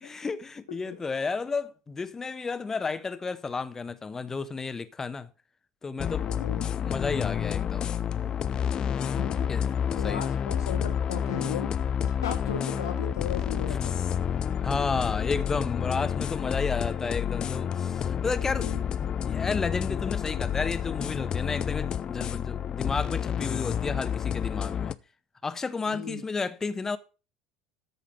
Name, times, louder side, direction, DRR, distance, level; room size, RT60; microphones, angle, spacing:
voice 1, 0.0-5.3 5.8-6.3 6.7-7.9 9.5-10.2 14.6-18.7 19.0-25.0 25.4-27.0, left 4 dB, 20° left, 1.1 m, -32 dB
sound 1, 6.0-25.0, left 8 dB, 35° left, 0.6 m, -29 dB
voice 2, 6.3-6.7 9.0-9.5 9.9-11.7 12.0-14.0 18.6-18.8 25.8-26.2, left 8 dB, 75° left, 2.0 m, -36 dB
13.5 x 5.6 x 5.9 m
figure-of-eight pair, 70°, 2 cm